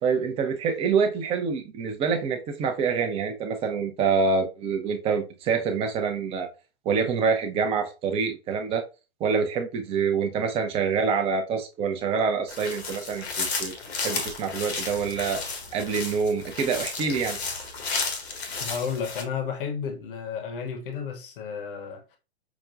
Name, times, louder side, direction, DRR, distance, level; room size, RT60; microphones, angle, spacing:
voice 1, 0.0-6.5 6.8-8.9 9.2-13.7 14.0-15.4 15.7-17.4, right 5 dB, 20° right, 0.6 m, -26 dB
sound 1, 12.5-19.2, left 4 dB, 75° left, 1.3 m, -33 dB
voice 2, 18.6-22.2, left 6 dB, 55° left, 1.0 m, -32 dB
5.8 x 2.2 x 2.5 m
hypercardioid pair, 125°, 32 cm